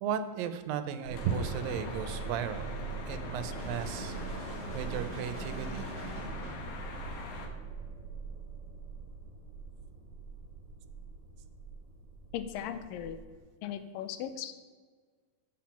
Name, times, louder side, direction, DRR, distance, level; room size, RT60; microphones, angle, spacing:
voice 1, 0.0-2.7 3.1-5.9, right 8 dB, 85° right, 10 dB, 2.4 m, -35 dB
sound 1, 1.0-13.4, right 4 dB, 15° right, 2.1 m, -43 dB
sound 2, 1.1-7.5, left 3 dB, 65° left, 1.6 m, -43 dB
sound 3, 3.5-6.7, right 2 dB, 30° right, 1.2 m, -44 dB
voice 2, 12.3-13.2 13.6-14.5, left 10 dB, 85° left, 10 dB, 2.3 m, -37 dB
7.6 x 6.9 x 5.8 m, 1.5 s
omnidirectional pair, 3.9 m